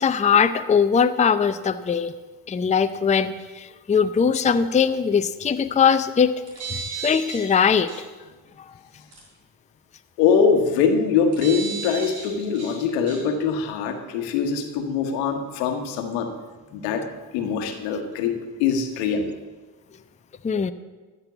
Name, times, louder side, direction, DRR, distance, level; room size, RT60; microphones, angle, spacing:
voice 1, 0.0-2.1 2.5-6.4 6.7-7.9 20.4-20.7, left 6 dB, 15° left, 10 dB, 0.5 m, -20 dB
sound 1, 6.3-7.5 7.9-8.0 9.1-9.2 11.3-12.8 13.1-13.2, right 5 dB, 80° right, 4.4 m, -34 dB
voice 2, 10.2-16.3 16.7-17.0 17.3-19.3, left 6 dB, 80° left, 6 dB, 1.3 m, -23 dB
13.5 x 6.3 x 7.0 m, 1.3 s
hypercardioid pair, 45°, 50 cm